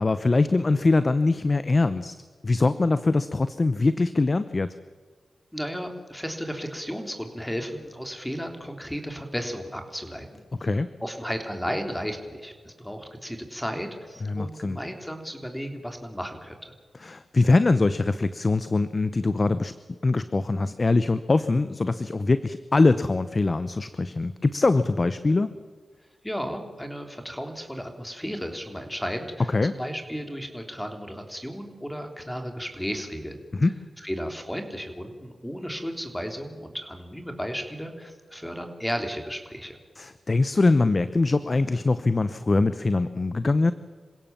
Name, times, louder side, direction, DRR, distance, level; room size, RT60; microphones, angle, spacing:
voice 1, 0.0-2.1 2.4-4.7 10.6-10.9 14.2-14.8 17.0-19.7 20.0-25.5 29.5-29.7 33.5-33.7 40.0-43.7, left 3 dB, 40° left, 13 dB, 0.8 m, -23 dB
voice 2, 5.5-16.7 26.2-33.4 34.0-39.8, equal, 5° left, 5 dB, 3.5 m, -34 dB
27.0 x 16.5 x 7.4 m, 1.5 s
cardioid pair, 60°, 0 cm